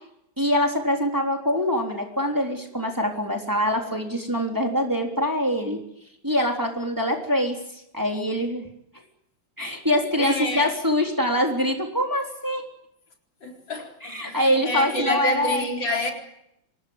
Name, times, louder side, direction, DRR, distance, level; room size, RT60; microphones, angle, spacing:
voice 1, 0.4-5.8 6.2-8.7 9.6-12.7 14.0-15.6, equal, 10° right, 3.7 m, -24 dB
voice 2, 10.2-10.7 13.4-16.1, left 2 dB, 75° left, 5.0 m, -28 dB
26.0 x 18.5 x 9.7 m
omnidirectional pair, 2.1 m